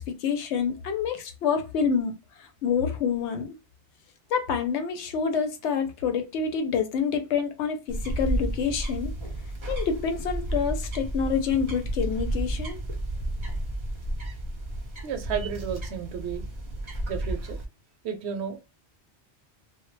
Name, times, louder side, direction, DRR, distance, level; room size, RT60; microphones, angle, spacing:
voice 1, 0.0-2.1 2.4-3.6 4.3-9.1 9.7-12.8, left 6 dB, 75° left, 0.9 m, -27 dB
sound 1, 7.9-17.7, right 1 dB, 35° right, 0.5 m, -32 dB
voice 2, 15.0-16.4 17.1-17.6 18.0-18.7, right 7 dB, 70° right, 0.8 m, -32 dB
2.1 x 2.1 x 3.1 m
omnidirectional pair, 1.2 m